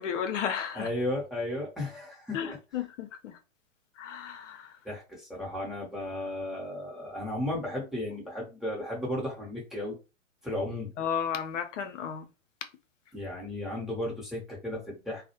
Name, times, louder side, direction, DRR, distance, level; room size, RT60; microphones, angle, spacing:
voice 1, 0.0-0.9 2.3-3.4 4.0-4.7 11.0-12.3, left 8 dB, 65° left, 0.7 m, -33 dB
voice 2, 0.7-2.6 4.8-10.0 10.4-10.9 13.1-15.2, left 1 dB, ahead, 0.8 m, -34 dB
2.3 x 2.1 x 2.8 m
hypercardioid pair, 120°, 39 cm